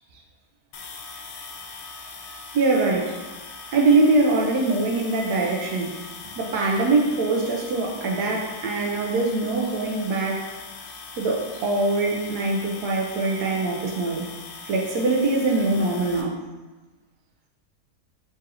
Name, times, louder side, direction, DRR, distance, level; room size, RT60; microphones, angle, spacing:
sound 1, 0.7-16.2, left 4 dB, 80° left, 1.1 m, -40 dB
voice 1, 2.5-3.2 3.7-6.0 6.4-10.5 11.2-14.3 14.6-16.4, right 3 dB, 90° right, 0 dB, 1.2 m, -23 dB
4.0 x 3.8 x 2.6 m, 1.2 s
omnidirectional pair, 1.7 m